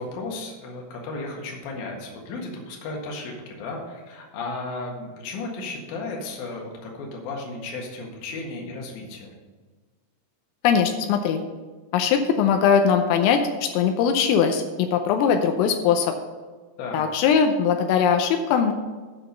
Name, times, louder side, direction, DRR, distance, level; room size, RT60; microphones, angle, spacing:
voice 1, 0.0-9.3 16.8-17.0, left 3 dB, 60° left, -1 dB, 2.8 m, -34 dB
voice 2, 10.6-11.4 11.9-16.1 16.9-18.7, left 7 dB, 85° left, 6 dB, 3.3 m, -20 dB
8.6 x 6.0 x 6.6 m, 1.4 s
omnidirectional pair, 6.0 m